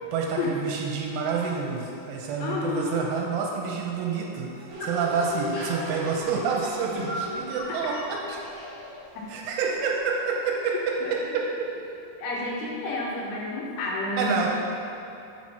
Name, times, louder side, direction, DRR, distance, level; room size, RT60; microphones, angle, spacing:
voice 1, 0.1-8.4 9.3-11.5 14.2-14.5, right 5 dB, 80° right, -1 dB, 3.0 m, -28 dB
sound 1, 1.7-3.2 3.7-3.8 4.4-5.9 6.4-10.7, right 1 dB, 55° left, 1.8 m, -41 dB
voice 2, 2.4-3.0 7.0-7.1 9.2-9.3 11.0-11.1 12.2-14.4, left 2 dB, 80° left, -4 dB, 3.3 m, -30 dB
sound 2, 4.7-9.7 10.0-10.1, equal, 55° right, 2.3 m, -39 dB
7.8 x 4.6 x 5.8 m, 2.9 s
omnidirectional pair, 5.9 m